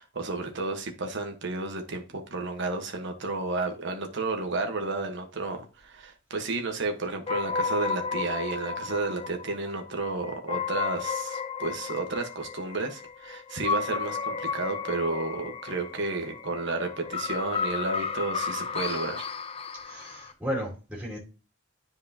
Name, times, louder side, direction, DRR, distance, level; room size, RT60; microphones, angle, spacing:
voice 1, 0.0-19.3, right 3 dB, 65° right, 1.2 m, -32 dB
sound 1, 7.3-20.3, left 5 dB, 30° left, 0.5 m, -33 dB
voice 2, 19.8-21.2, equal, 5° right, 3.1 m, -34 dB
10.0 x 4.7 x 2.8 m
head